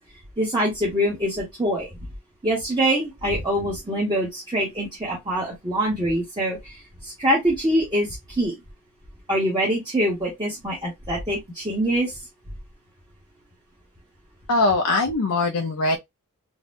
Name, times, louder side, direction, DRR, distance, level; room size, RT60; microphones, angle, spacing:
voice 1, 0.4-1.9 2.4-8.5 9.3-12.1, equal, 20° right, 1.0 m, -24 dB
voice 2, 14.5-16.0, left 2 dB, 90° left, 0.5 m, -21 dB
4.0 x 2.2 x 2.5 m
head